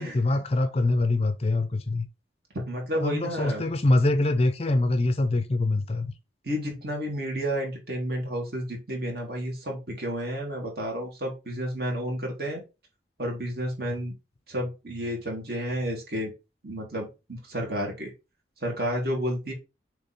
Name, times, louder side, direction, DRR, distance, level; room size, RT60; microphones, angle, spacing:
voice 1, 0.0-2.1 2.9-6.1 13.9-14.0, left 2 dB, 30° left, 0.5 m, -24 dB
voice 2, 2.7-3.6 6.4-12.6 13.2-14.1 14.5-16.3 16.6-18.1 18.6-19.5, equal, 55° right, 2.5 m, -31 dB
6.8 x 3.3 x 4.3 m
head